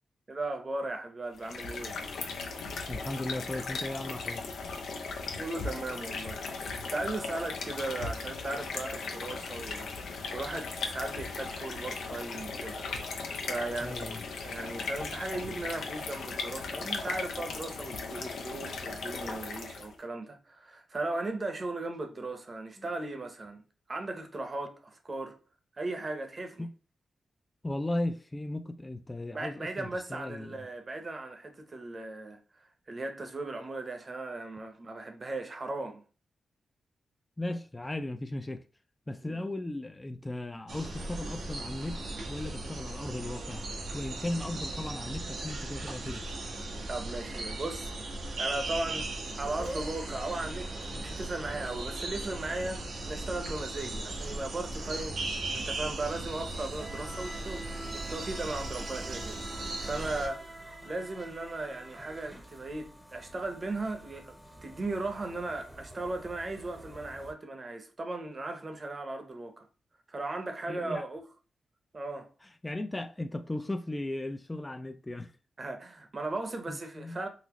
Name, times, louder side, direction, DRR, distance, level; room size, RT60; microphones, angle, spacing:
voice 1, 0.3-2.0 5.3-6.6 6.9-14.1 14.4-25.4 25.8-26.7 29.3-32.4 32.9-36.0 39.2-39.4 46.9-55.2 55.5-69.7 70.1-71.2 71.9-72.3 75.6-77.3, right 2 dB, 40° right, 0.8 m, -37 dB
sound 1, 1.3-20.0, left 4 dB, 85° left, 0.5 m, -37 dB
voice 2, 2.9-4.4 13.8-14.2 22.8-22.9 26.6-26.7 27.6-30.7 37.4-38.6 39.1-43.7 43.9-46.3 70.7-71.1 72.4-75.3 76.7-77.2, left 1 dB, 20° left, 0.3 m, -36 dB
sound 2, 40.7-60.3, right 2 dB, 80° right, 0.7 m, -37 dB
sound 3, 49.2-67.3, right 1 dB, 10° right, 0.7 m, -48 dB
3.9 x 2.0 x 2.9 m
cardioid pair, 65°, 0 cm